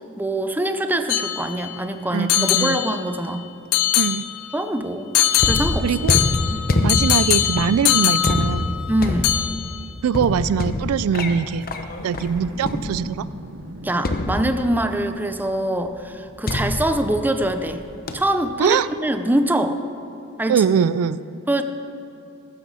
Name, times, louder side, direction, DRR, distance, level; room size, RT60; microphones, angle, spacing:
voice 1, 0.2-3.5 4.5-5.2 5.4-6.0 6.5-6.6 8.9-9.4 13.8-17.8 18.1-19.8 20.4-20.7 21.5-21.6, right 1 dB, 10° right, 8 dB, 0.6 m, -24 dB
sound 1, 1.1-1.8 2.3-3.3 3.7-4.6 5.1-9.0 9.2-9.9, left 12 dB, 75° left, 0.6 m, -22 dB
voice 2, 2.1-2.8 4.0-4.3 5.8-6.2 6.8-8.7 10.0-11.7 12.0-13.3 18.6-18.9 20.5-21.2, right 7 dB, 80° right, 16 dB, 0.3 m, -22 dB
sound 2, 5.4-13.3 14.0-15.0 16.5-17.7 18.1-18.4, left 2 dB, 45° left, 0.9 m, -25 dB
Boom, 12.1-15.3, right 1 dB, 60° right, 0.9 m, -40 dB
15.0 x 12.5 x 4.1 m, 2.8 s
head